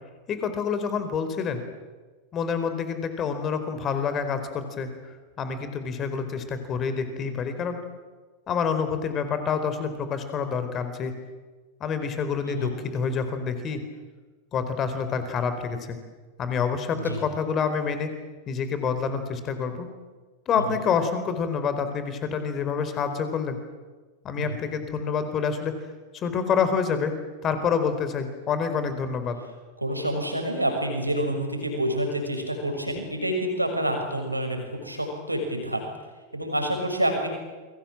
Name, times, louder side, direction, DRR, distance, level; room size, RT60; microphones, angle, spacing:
voice 1, 0.3-1.6 2.3-4.9 5.4-7.8 8.5-11.1 11.8-13.8 14.5-16.0 16.4-18.1 18.5-19.9 20.5-23.6 24.2-25.7 26.1-27.1 27.4-29.4, left 6 dB, 30° left, 9 dB, 4.5 m, -27 dB
voice 2, 29.8-35.8 36.3-37.3, right 1 dB, 85° right, 4 dB, 6.5 m, -28 dB
29.0 x 23.5 x 7.8 m, 1.3 s
figure-of-eight pair, 90°, 0 cm